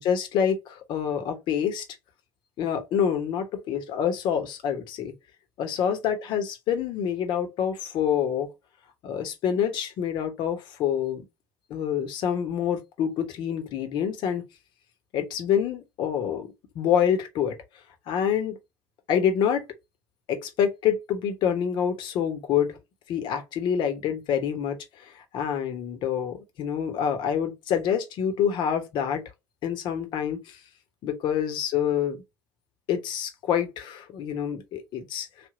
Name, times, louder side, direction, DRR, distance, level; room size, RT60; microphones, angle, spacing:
voice 1, 0.0-1.8 2.6-5.1 5.6-8.5 9.0-11.2 11.7-14.4 15.1-17.6 18.1-18.6 19.1-19.7 20.3-22.8 23.1-29.2 29.6-30.6 31.0-32.2 32.9-35.3, left 8 dB, 60° left, 1.1 m, -27 dB
3.4 x 2.6 x 3.9 m
hypercardioid pair, 65°, 9 cm